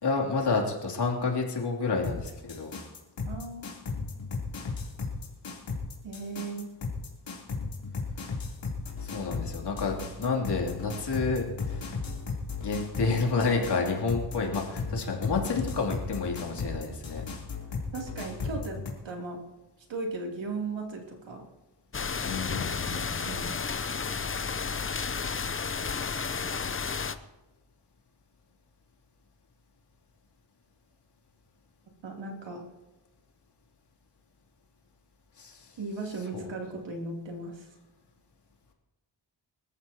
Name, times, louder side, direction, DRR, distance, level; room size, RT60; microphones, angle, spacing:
voice 1, 0.0-2.8 9.0-11.9 12.6-17.2 22.2-23.3 35.4-35.7 36.3-36.4, left 4 dB, 65° left, 0 dB, 3.2 m, -30 dB
sound 1, 2.0-18.9, left 4 dB, 90° left, 3.6 m, -35 dB
voice 2, 3.3-3.6 6.0-6.7 17.9-18.8 19.0-19.4 19.9-21.4 22.9-23.7 32.0-32.6 35.8-37.7, right 3 dB, 80° right, -1 dB, 3.2 m, -37 dB
sound 2, 21.9-27.2, left 5 dB, 30° left, 0.7 m, -32 dB
26.0 x 14.0 x 3.0 m, 1.1 s
wide cardioid pair, 130°, 44 cm